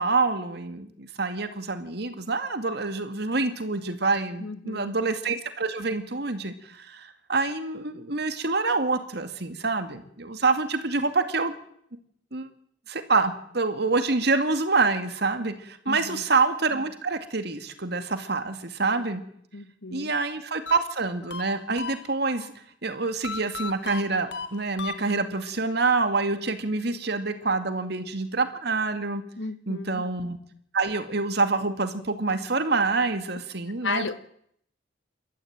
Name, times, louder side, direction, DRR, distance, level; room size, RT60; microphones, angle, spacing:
voice 1, 0.0-11.5 12.3-12.5 12.9-19.2 19.9-22.5 22.8-29.2 29.7-30.4 30.7-34.1, right 3 dB, 60° right, 9 dB, 2.3 m, -26 dB
voice 2, 4.4-4.9 15.8-16.2 19.5-20.1 29.4-30.1 33.8-34.1, left 4 dB, 90° left, 13 dB, 1.4 m, -34 dB
sound 1, 20.7-22.5 23.2-25.5, left 5 dB, 65° left, 1.4 m, -37 dB
28.0 x 13.5 x 8.9 m, 0.69 s
head